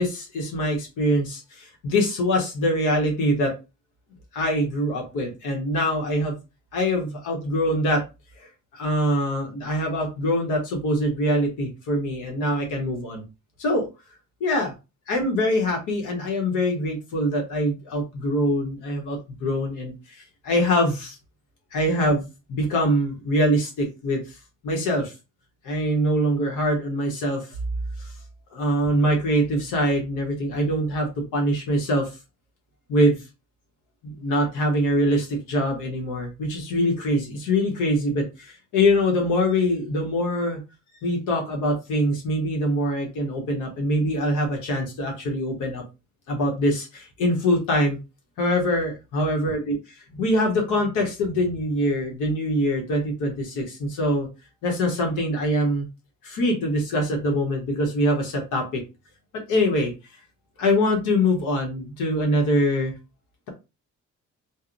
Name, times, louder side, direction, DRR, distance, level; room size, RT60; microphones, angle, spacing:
voice 1, 0.0-3.5 4.3-6.3 6.7-8.0 8.4-13.2 13.6-13.9 14.4-14.7 15.1-19.9 20.4-21.2 21.7-24.4 24.6-25.1 25.6-27.5 28.0-28.1 28.5-32.1 32.9-33.2 34.0-40.6 41.0-45.8 46.3-48.0 48.4-49.8 50.1-54.3 54.6-55.9 56.2-58.8 59.5-59.9 60.6-62.9, equal, 90° left, 1 dB, 1.0 m, -24 dB
2.7 x 2.2 x 2.5 m, 0.27 s
cardioid pair, 90°, 30 cm